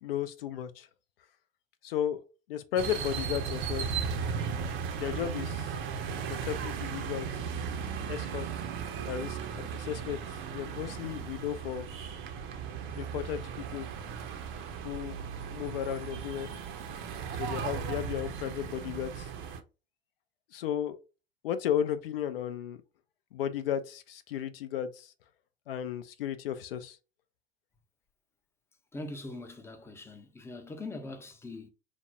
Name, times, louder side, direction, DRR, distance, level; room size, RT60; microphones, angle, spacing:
voice 1, 0.0-0.9 1.8-2.2 2.5-3.9 5.0-5.7 6.3-7.4 8.1-8.5 9.0-11.9 13.0-13.9 14.8-16.5 17.4-19.3 20.5-21.0 21.4-22.8 23.3-25.1 25.7-27.0, left 10 dB, 75° left, 0.5 m, -34 dB
sound 1, 2.8-19.6, right 6 dB, 45° right, 0.6 m, -36 dB
voice 2, 28.9-31.7, left 2 dB, 10° left, 0.5 m, -42 dB
3.3 x 2.0 x 2.6 m
figure-of-eight pair, 70°, 29 cm